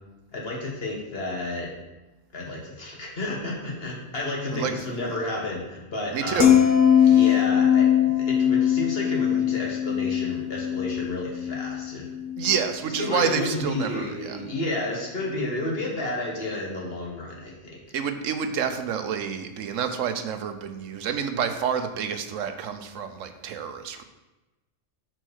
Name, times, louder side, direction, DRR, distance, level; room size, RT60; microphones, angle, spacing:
voice 1, 0.3-1.7 2.3-6.6 7.0-12.1 12.9-17.8, left 2 dB, 50° left, -2 dB, 1.8 m, -31 dB
voice 2, 6.1-6.5 7.0-7.3 12.4-14.4 17.9-24.0, right 7 dB, 90° right, 8 dB, 1.1 m, -28 dB
sound 1, 6.4-12.7 13.0-13.3, left 9 dB, 85° left, 1.3 m, -21 dB
6.1 x 4.4 x 6.3 m, 1.1 s
omnidirectional pair, 1.3 m